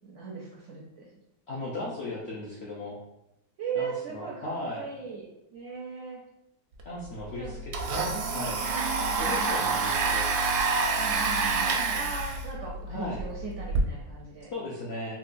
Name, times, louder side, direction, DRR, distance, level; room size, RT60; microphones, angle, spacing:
voice 1, 0.0-1.2 3.6-4.5 4.7-6.2 7.4-7.6 8.7-10.0 11.0-14.5, right 5 dB, 70° right, -3 dB, 0.7 m, -38 dB
voice 2, 1.5-3.0 3.7-4.8 6.8-7.6 7.9-8.1 8.3-8.6 9.2-10.3 12.9-13.2 14.5-15.1, left 1 dB, 60° left, -5 dB, 0.7 m, -36 dB
Domestic sounds home sounds, 6.8-6.9 7.2-13.8, right 4 dB, 85° right, 1.1 m, -28 dB
3.8 x 2.3 x 2.4 m, 0.89 s
omnidirectional pair, 1.7 m